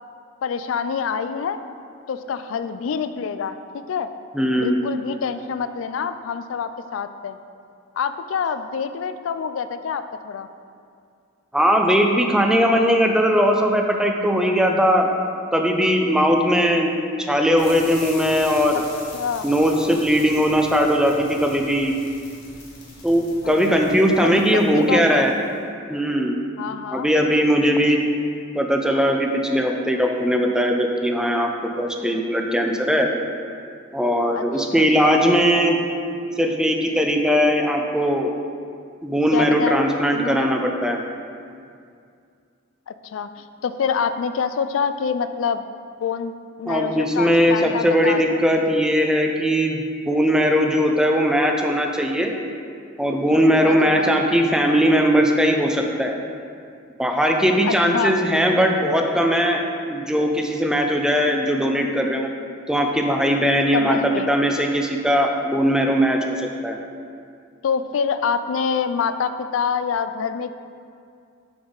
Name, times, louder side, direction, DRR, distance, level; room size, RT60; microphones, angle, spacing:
voice 1, 0.4-1.6 2.1-4.1 4.6-7.4 8.0-10.5 19.1-19.4 23.4-25.3 26.6-27.1 34.3-34.8 39.3-40.5 42.9-45.6 46.0-46.3 46.6-48.4 53.6-54.2 57.7-58.1 63.7-64.3 67.6-70.5, left 6 dB, 75° left, 11 dB, 0.3 m, -26 dB
voice 2, 4.3-4.8 11.5-15.1 15.5-16.9 17.2-18.8 19.4-21.9 23.0-25.3 25.9-26.4 26.9-28.0 28.5-31.5 31.8-33.1 33.9-35.8 36.4-38.3 39.0-41.0 46.7-49.8 50.1-52.3 53.0-56.1 57.0-62.3 62.7-66.8, equal, 5° right, 2 dB, 0.5 m, -19 dB
sound 1, 17.6-25.5, left 2 dB, 60° left, 1.8 m, -42 dB
6.8 x 5.3 x 3.9 m, 2.3 s
head